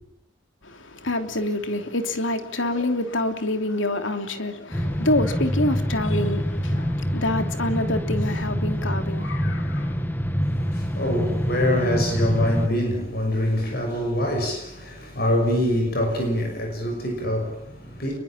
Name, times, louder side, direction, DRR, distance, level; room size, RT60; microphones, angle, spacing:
voice 1, 0.6-10.0, left 1 dB, 75° left, 3.1 m, -27 dB
sound 1, 4.7-12.7, equal, 10° left, 1.5 m, -26 dB
voice 2, 10.4-18.2, left 1 dB, 50° left, 6.1 m, -25 dB
29.5 x 22.5 x 7.5 m
head